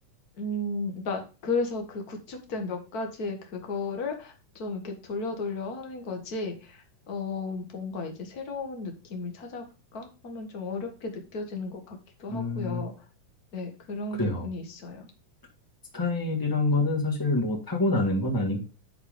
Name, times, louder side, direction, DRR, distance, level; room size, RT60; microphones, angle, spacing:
voice 1, 0.4-9.6 9.9-12.9 13.5-15.1, left 3 dB, 50° left, 4 dB, 1.1 m, -34 dB
voice 2, 12.3-12.8 14.2-14.5 15.9-18.6, left 2 dB, 10° left, 0 dB, 1.0 m, -26 dB
9.9 x 4.2 x 5.1 m, 0.32 s
omnidirectional pair, 3.9 m